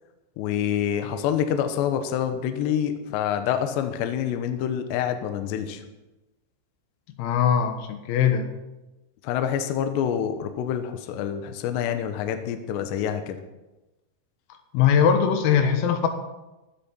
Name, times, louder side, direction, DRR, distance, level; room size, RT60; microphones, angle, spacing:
voice 1, 0.4-5.8 9.2-13.4, left 9 dB, 75° left, 7 dB, 2.8 m, -27 dB
voice 2, 7.2-8.5 14.7-16.1, left 7 dB, 90° left, 6 dB, 4.1 m, -21 dB
15.5 x 12.5 x 4.5 m, 1.0 s
omnidirectional pair, 6.0 m